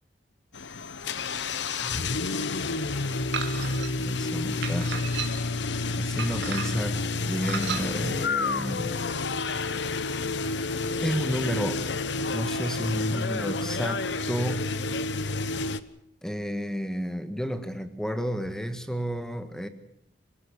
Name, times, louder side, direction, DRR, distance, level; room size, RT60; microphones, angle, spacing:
sound 1, 0.5-15.8, left 3 dB, 75° left, 1.0 m, -29 dB
voice 1, 1.5-2.4 4.0-4.9 6.0-9.0 11.0-11.8 12.3-14.7 16.2-19.7, equal, 5° left, 9 dB, 1.6 m, -31 dB
sound 2, 3.3-3.9 4.6-5.6 6.2-6.9 7.4-7.9, right 7 dB, 70° right, 2.6 m, -33 dB
26.5 x 17.0 x 7.1 m, 0.76 s
head